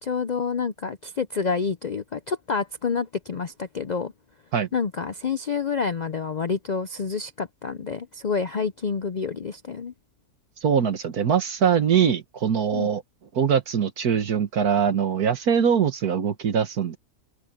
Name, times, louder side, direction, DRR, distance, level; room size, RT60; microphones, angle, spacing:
voice 1, 0.0-4.1 4.7-9.9 12.7-12.9, left 5 dB, 80° left, 0.3 m, -28 dB
voice 2, 10.6-13.0 13.3-17.0, right 7 dB, 80° right, 1.8 m, -22 dB
open air
omnidirectional pair, 1.6 m